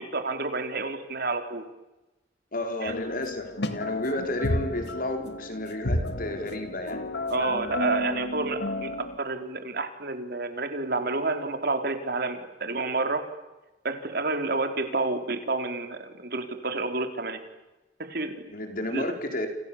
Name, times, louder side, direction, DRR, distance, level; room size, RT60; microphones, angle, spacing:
voice 1, 0.0-1.6 2.8-2.9 7.3-13.3 13.8-17.4 18.0-18.5 18.9-19.1, right 3 dB, 60° right, 6 dB, 3.8 m, -29 dB
voice 2, 2.5-7.1 18.5-19.5, left 1 dB, 50° left, 5 dB, 4.8 m, -32 dB
sound 1, 2.9-9.2, left 1 dB, 70° left, 2.2 m, -32 dB
29.5 x 27.5 x 7.3 m, 1.0 s
head